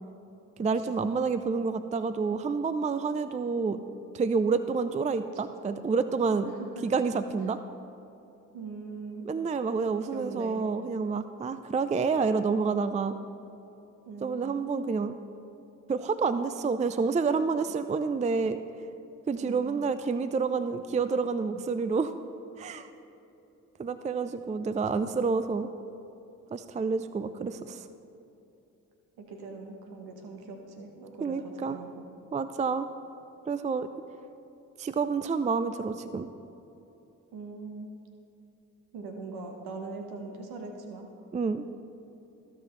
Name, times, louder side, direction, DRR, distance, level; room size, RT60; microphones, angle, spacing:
voice 1, 0.6-3.8 4.1-6.5 6.8-7.6 9.2-13.2 14.2-15.2 15.9-18.6 19.3-22.1 22.6-22.9 23.8-25.7 26.5-27.9 31.2-31.8 32.3-32.9 33.5-33.9 34.8-36.3 41.3-41.6, right 4 dB, 20° right, 11 dB, 0.4 m, -28 dB
voice 2, 8.5-9.3 10.0-10.6 14.1-14.5 19.4-19.8 24.7-25.2 29.2-32.0 37.3-37.9 38.9-41.1, right 3 dB, 75° right, 3 dB, 1.2 m, -41 dB
15.0 x 5.6 x 3.2 m, 3.0 s
hypercardioid pair, 40°, 38 cm